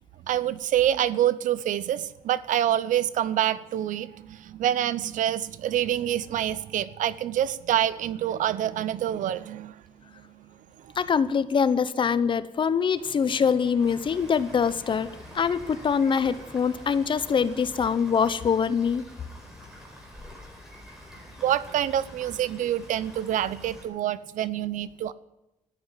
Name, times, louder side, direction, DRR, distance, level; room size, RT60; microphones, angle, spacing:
voice 1, 0.3-9.8 10.1-10.5 10.8-10.9 21.4-25.1, right 11 dB, 85° right, 17 dB, 0.8 m, -26 dB
voice 2, 11.0-19.0, left 6 dB, 40° left, 15 dB, 0.8 m, -24 dB
sound 1, 12.9-18.0, right 2 dB, 50° right, 5.4 m, -50 dB
Rain, 13.8-23.8, left 1 dB, 5° right, 4.8 m, -47 dB
14.0 x 9.9 x 9.0 m, 0.92 s
cardioid pair, 145°, 13 cm